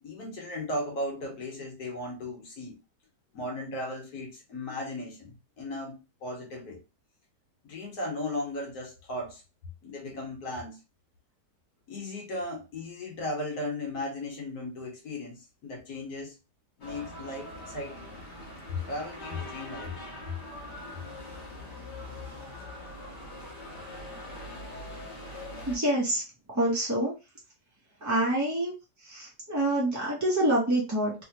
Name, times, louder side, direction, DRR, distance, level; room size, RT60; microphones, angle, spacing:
voice 1, 0.0-2.8 3.3-6.8 7.6-9.4 9.8-10.8 11.9-16.3 16.8-18.1 18.7-20.0 20.3-20.4, left 1 dB, 65° left, 1.4 m, -36 dB
sound 1, 16.8-25.8, left 1 dB, 35° left, 0.9 m, -42 dB
voice 2, 25.7-26.2 26.5-27.1 28.0-28.7 29.0-31.1, right 1 dB, 25° right, 0.4 m, -26 dB
3.2 x 2.8 x 2.8 m
omnidirectional pair, 1.8 m